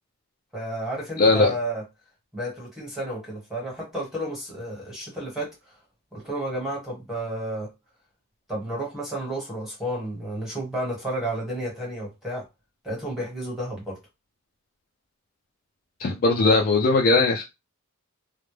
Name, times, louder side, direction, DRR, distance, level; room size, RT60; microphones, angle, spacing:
voice 1, 0.5-1.8 2.3-5.5 6.1-7.7 8.5-12.4 12.8-14.0, right 1 dB, ahead, 1.2 m, -31 dB
voice 2, 1.2-1.5 16.0-17.4, left 3 dB, 40° left, 0.4 m, -19 dB
2.1 x 2.1 x 3.1 m
head